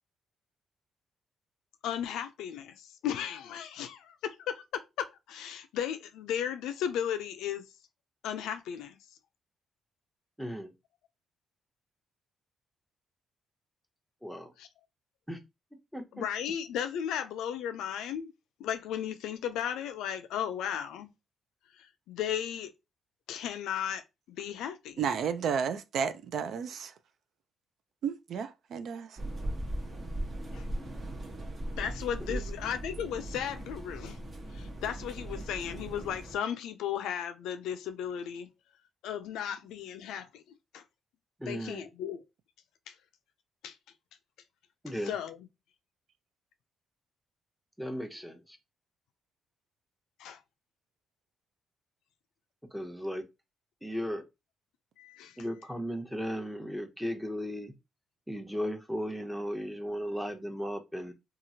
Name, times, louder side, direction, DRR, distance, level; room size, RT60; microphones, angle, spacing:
voice 1, 1.8-7.6 8.2-9.0 14.6-14.7 16.1-18.3 18.6-21.1 21.8-22.7 23.3-25.1 30.5-30.7 31.8-34.2 34.5-38.5 39.0-40.4 40.7-40.8 41.5-42.2 42.9-43.0 43.6-43.7 45.0-45.4 50.2-50.4 55.0-55.5, left 9 dB, 85° left, 0.3 m, -35 dB
voice 2, 10.4-10.7 14.2-14.5 15.3-15.4 15.9-16.2 32.3-32.4 41.4-41.9 44.8-45.1 47.8-48.6 52.7-53.2 53.8-54.2 55.4-57.7 58.3-61.1, equal, ahead, 0.7 m, -36 dB
voice 3, 25.0-26.9 28.0-29.2, right 7 dB, 65° right, 0.3 m, -32 dB
sound 1, 29.2-36.4, right 1 dB, 35° right, 0.9 m, -38 dB
2.9 x 2.4 x 2.7 m
cardioid pair, 90°, 0 cm